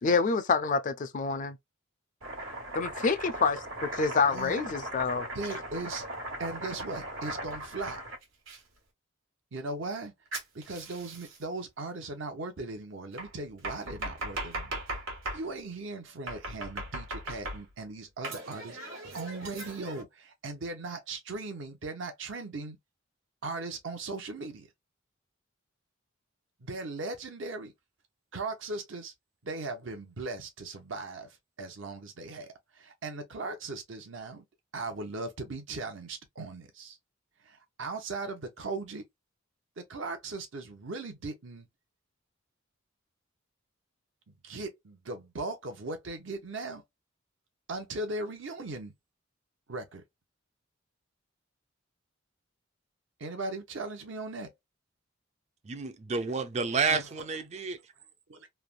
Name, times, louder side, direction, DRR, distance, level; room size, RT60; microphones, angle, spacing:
voice 1, 0.0-1.6 2.7-5.3, left 4 dB, 40° left, 0.4 m, -27 dB
Domestic sounds home sounds, 2.2-8.6 10.3-11.4 13.2-15.5 16.3-17.8 18.2-20.0, right 1 dB, 85° right, 1.3 m, -38 dB
voice 2, 5.3-6.0 6.4-8.0 9.5-10.1 10.5-14.8 15.3-18.8 19.0-22.8 23.4-24.7 26.6-27.7 28.3-29.1 29.4-34.4 34.7-37.0 37.4-39.1 39.8-41.7 44.3-46.8 47.7-48.9 49.7-50.0 53.2-54.5 56.9-57.0 58.3-58.5, right 3 dB, 65° right, 0.7 m, -38 dB
voice 3, 55.6-57.8, right 5 dB, 35° right, 0.4 m, -30 dB
3.3 x 2.1 x 2.4 m
head